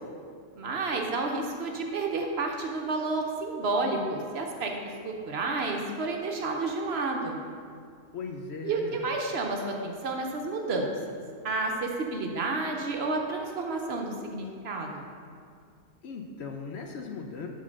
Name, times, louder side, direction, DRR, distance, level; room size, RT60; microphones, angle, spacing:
voice 1, 0.6-4.7 5.0-7.4 8.6-10.9 11.4-15.0, right 3 dB, 60° right, 2 dB, 0.9 m, -30 dB
voice 2, 8.1-9.0 16.0-17.5, left 4 dB, 65° left, 3 dB, 0.8 m, -38 dB
7.3 x 3.7 x 6.4 m, 2.2 s
omnidirectional pair, 1.4 m